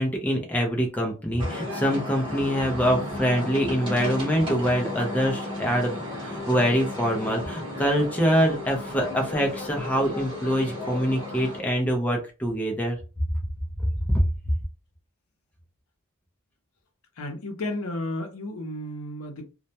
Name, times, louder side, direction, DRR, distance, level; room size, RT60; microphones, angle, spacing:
voice 1, 0.0-13.0 14.1-14.2, equal, 5° left, 0.4 m, -24 dB
sound 1, 1.4-11.6, left 1 dB, 20° right, 0.8 m, -34 dB
voice 2, 17.2-19.5, left 1 dB, 75° left, 0.6 m, -33 dB
2.2 x 2.0 x 2.7 m
head